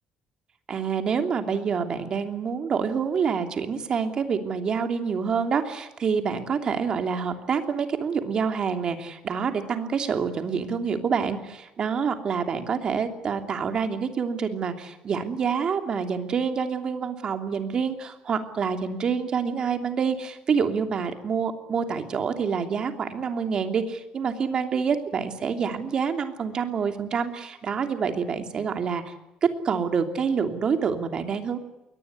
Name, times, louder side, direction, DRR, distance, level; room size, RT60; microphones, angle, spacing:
voice 1, 0.7-29.1 29.4-31.6, right 6 dB, 40° right, 7 dB, 2.9 m, -27 dB
22.0 x 19.0 x 9.6 m, 0.95 s
cardioid pair, 150°, 2 cm